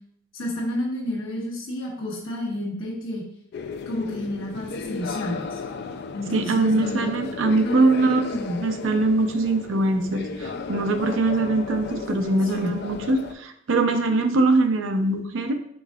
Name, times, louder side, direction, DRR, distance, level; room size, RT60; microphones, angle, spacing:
voice 1, 0.3-3.2 3.9-5.6 6.1-7.1 7.6-8.6 12.5-12.7, left 1 dB, 85° left, -3 dB, 1.1 m, -30 dB
sound 1, 3.5-13.3, left 4 dB, 55° left, 0.3 m, -34 dB
voice 2, 6.3-8.3 8.6-15.5, right 2 dB, 75° right, 6 dB, 0.5 m, -22 dB
5.1 x 3.6 x 2.3 m, 0.72 s
head